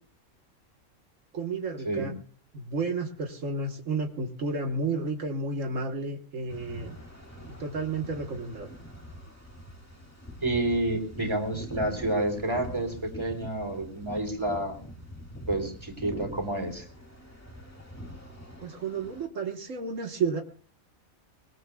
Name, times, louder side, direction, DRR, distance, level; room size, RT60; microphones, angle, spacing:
voice 1, 1.3-2.1 2.5-7.0 7.4-8.7 18.6-20.4, right 3 dB, 75° right, 4 dB, 1.7 m, -32 dB
sound 1, 6.5-19.3, equal, 10° left, 2.4 m, -44 dB
voice 2, 10.4-14.8 15.5-16.9, right 1 dB, 20° right, 3 dB, 3.6 m, -29 dB
23.5 x 21.0 x 2.3 m, 0.43 s
omnidirectional pair, 1.3 m